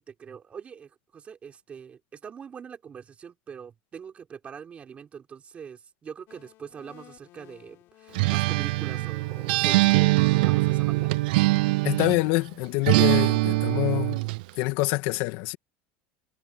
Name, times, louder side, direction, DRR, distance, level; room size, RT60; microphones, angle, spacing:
voice 1, 0.0-11.1, right 7 dB, 25° right, 4.9 m, -43 dB
sound 1, 6.3-11.3, left 16 dB, 50° left, 4.5 m, -53 dB
Acoustic guitar, 8.1-12.3 12.9-14.4, right 21 dB, 80° right, 0.4 m, -22 dB
voice 2, 11.8-14.2 14.6-15.6, left 20 dB, 65° left, 2.3 m, -26 dB
supercardioid pair, 140°, 5 cm